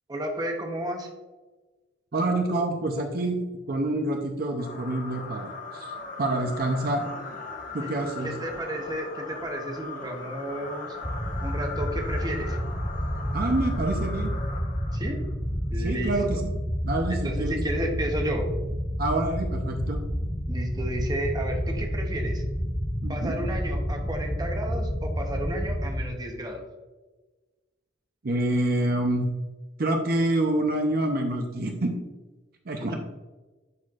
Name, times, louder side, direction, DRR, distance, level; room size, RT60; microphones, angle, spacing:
voice 1, 0.1-1.1 7.8-8.0 8.2-11.0 11.4-12.6 14.9-15.2 15.7-16.2 17.2-18.5 20.5-22.4 23.1-26.6 32.8-32.9, right 1 dB, 20° right, 2 dB, 0.9 m, -32 dB
voice 2, 2.1-3.4 3.7-7.1 7.7-8.3 13.3-14.3 15.8-16.5 16.8-17.6 19.0-20.0 23.0-23.3 28.2-29.3 29.8-31.9 32.7-32.9, right 1 dB, 50° right, 3 dB, 0.6 m, -27 dB
sound 1, 4.6-15.3, left 3 dB, 45° left, 0.9 m, -39 dB
sound 2, 11.0-26.1, equal, 5° left, 0.5 m, -30 dB
10.5 x 4.3 x 2.4 m, 1.2 s
head